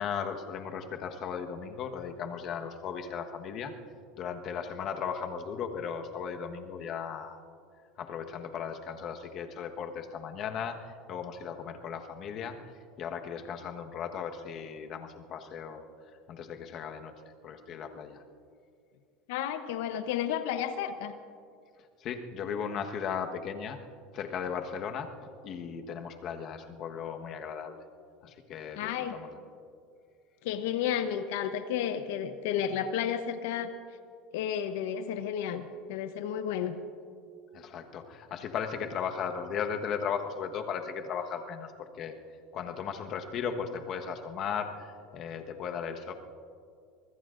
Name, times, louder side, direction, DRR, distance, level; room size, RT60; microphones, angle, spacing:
voice 1, 0.0-3.7 4.2-7.4 8.0-12.6 13.0-15.8 16.3-17.1 17.4-18.2 22.0-23.8 24.1-27.8 28.2-29.3 37.5-42.1 42.5-46.1, left 7 dB, 45° left, 5 dB, 1.3 m, -36 dB
voice 2, 19.3-21.2 28.8-29.2 30.4-33.7 34.3-36.8, left 9 dB, 80° left, 9 dB, 0.9 m, -32 dB
24.5 x 20.5 x 2.6 m, 2.3 s
supercardioid pair, 120°, 0 cm